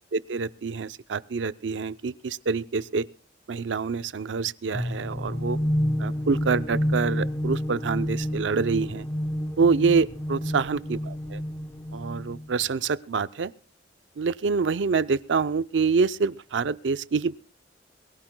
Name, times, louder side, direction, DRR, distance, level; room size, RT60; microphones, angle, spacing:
voice 1, 0.1-3.1 3.5-5.6 6.0-9.1 9.6-11.4 11.9-13.5 14.2-17.4, right 5 dB, 85° right, 0.6 m, -26 dB
sound 1, 4.7-12.5, equal, 15° left, 0.6 m, -29 dB
22.5 x 16.5 x 2.2 m
head